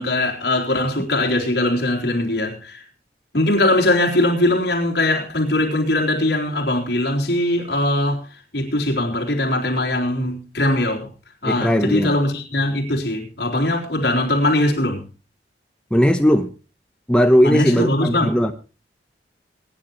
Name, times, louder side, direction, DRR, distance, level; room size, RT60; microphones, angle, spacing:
voice 1, 0.0-2.8 3.3-8.3 8.5-11.1 11.4-15.0 17.4-18.4, left 1 dB, 65° left, 3.9 m, -21 dB
voice 2, 11.4-12.1 15.9-16.5 17.1-18.5, equal, 5° left, 0.9 m, -17 dB
22.5 x 10.5 x 3.1 m
head